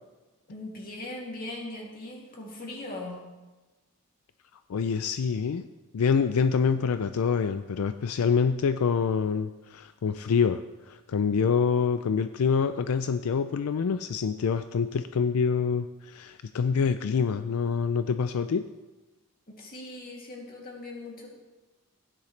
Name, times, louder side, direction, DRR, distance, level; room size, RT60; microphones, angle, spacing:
voice 1, 0.5-3.2 19.5-21.3, left 2 dB, 40° left, -2 dB, 2.6 m, -39 dB
voice 2, 4.7-5.6 5.9-10.6 10.9-18.7, left 6 dB, 80° left, 10 dB, 0.4 m, -26 dB
16.0 x 10.0 x 3.3 m, 1.1 s
head